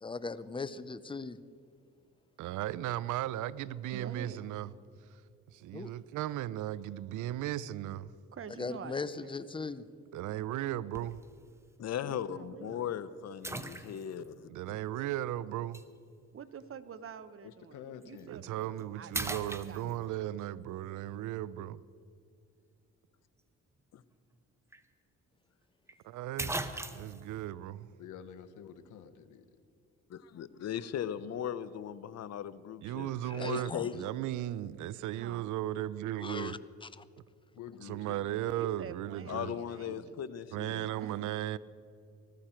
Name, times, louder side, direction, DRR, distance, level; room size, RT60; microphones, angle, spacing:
voice 1, 0.0-1.4 5.7-5.9 8.6-9.9 33.3-33.9 36.2-37.0, left 4 dB, 15° left, 0.6 m, -39 dB
voice 2, 2.4-4.7 5.5-8.1 10.1-11.2 14.5-15.8 18.3-21.8 26.0-26.5 26.9-27.9 32.8-36.6 37.9-39.5 40.5-41.6, right 13 dB, 80° right, 0.5 m, -36 dB
voice 3, 3.9-4.4 8.3-9.4 12.0-12.9 16.3-20.2 35.1-35.5 38.6-40.3 41.0-41.3, right 7 dB, 45° right, 0.9 m, -47 dB
sound 1, 10.9-11.3 11.9-12.0 13.4-14.3 15.7-15.9 18.0-18.2 18.6-18.8 19.1-20.2 24.3-24.4 24.7-24.8 25.9-26.0 26.4-27.2, right 2 dB, 10° right, 0.8 m, -38 dB
voice 4, 11.8-14.5 30.1-34.0 39.3-40.9, left 9 dB, 60° left, 0.7 m, -38 dB
voice 5, 17.4-18.3 28.0-29.6 37.5-38.3, left 8 dB, 85° left, 1.1 m, -49 dB
19.0 x 14.5 x 4.4 m
cardioid pair, 90°, 30 cm